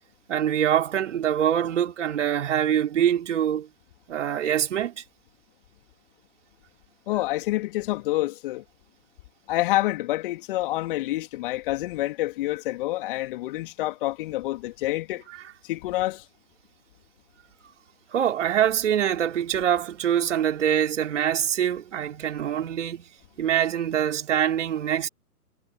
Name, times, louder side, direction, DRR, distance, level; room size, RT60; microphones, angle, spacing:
voice 1, 0.3-3.7 4.1-5.0 18.1-23.1 23.4-25.1, right 10 dB, 50° right, 5.0 m, -24 dB
voice 2, 7.1-8.6 9.5-15.2 15.6-16.2, left 17 dB, 35° left, 3.7 m, -27 dB
figure-of-eight pair, 130°, 46 cm